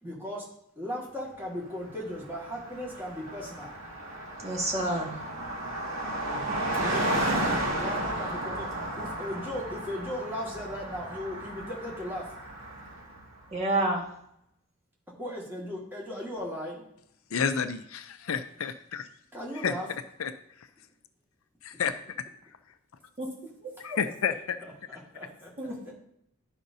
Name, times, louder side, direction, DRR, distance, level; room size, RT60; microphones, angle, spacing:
voice 1, 0.0-3.8 6.7-7.4 7.7-12.3 15.2-16.8 19.3-19.9 25.1-25.9, left 1 dB, 10° right, -4 dB, 1.8 m, -37 dB
Car passing by, 1.9-2.0 2.2-13.2, right 1 dB, 75° right, 2.1 m, -33 dB
voice 2, 4.4-5.2 13.5-14.1 23.2-23.3 23.6-24.0 25.6-25.9, right 1 dB, 30° right, -2 dB, 1.7 m, -29 dB
voice 3, 17.3-19.1 19.6-19.7 20.2-20.3 21.6-22.0 23.8-24.6, left 6 dB, 85° left, 10 dB, 0.5 m, -30 dB
11.5 x 5.1 x 2.7 m, 0.74 s
head